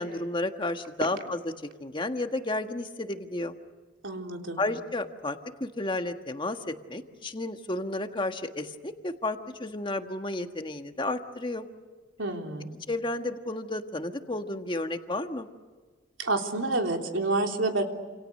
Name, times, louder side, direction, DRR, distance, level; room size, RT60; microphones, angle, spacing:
voice 1, 0.0-1.5 1.8-3.5 4.6-11.7 12.9-15.5, left 2 dB, 25° left, 6 dB, 1.6 m, -32 dB
voice 2, 4.0-4.6 12.2-12.7 16.2-17.8, right 2 dB, 75° right, 3 dB, 3.5 m, -28 dB
28.5 x 27.5 x 6.6 m, 1.4 s
head